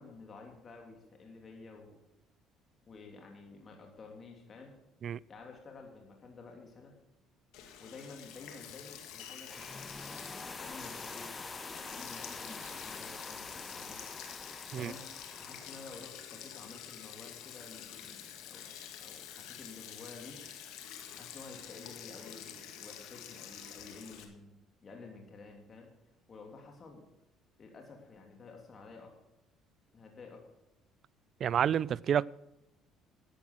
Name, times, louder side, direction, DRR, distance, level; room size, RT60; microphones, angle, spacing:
voice 1, 0.0-2.0 2.9-4.7 5.3-6.9 7.8-11.3 11.9-14.0 14.8-15.1 15.4-20.4 21.1-25.9 26.3-27.0 27.6-29.1 29.9-30.4, left 4 dB, 40° left, 3.1 m, -51 dB
Sink (filling or washing), 7.5-24.2, left 9 dB, 80° left, 1.9 m, -48 dB
sound 1, 9.5-16.1, left 3 dB, 25° left, 0.4 m, -45 dB
voice 2, 31.4-32.3, right 9 dB, 55° right, 0.4 m, -29 dB
12.5 x 8.5 x 6.2 m
supercardioid pair, 80°, 0 cm